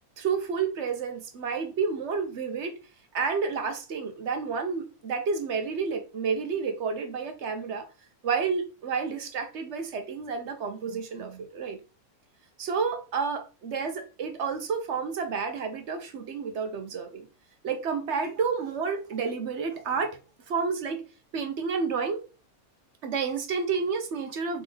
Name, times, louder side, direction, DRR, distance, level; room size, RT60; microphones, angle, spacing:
voice 1, 0.2-2.8 3.1-7.9 8.2-11.8 12.6-17.3 17.6-20.2 20.5-21.0 21.3-22.2 23.0-24.6, right 5 dB, 60° right, 0.9 m, -30 dB
4.0 x 3.7 x 3.4 m
omnidirectional pair, 1.6 m